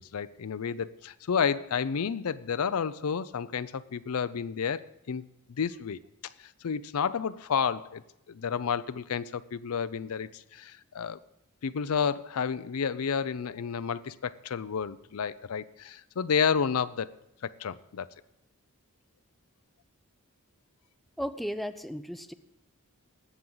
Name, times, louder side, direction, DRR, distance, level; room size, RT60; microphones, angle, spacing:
voice 1, 0.0-6.0 6.4-11.2 11.6-17.1 17.4-18.1, left 6 dB, 75° left, 15 dB, 0.5 m, -31 dB
voice 2, 21.2-22.3, equal, ahead, 10 dB, 0.4 m, -35 dB
19.0 x 7.4 x 3.9 m, 0.84 s
head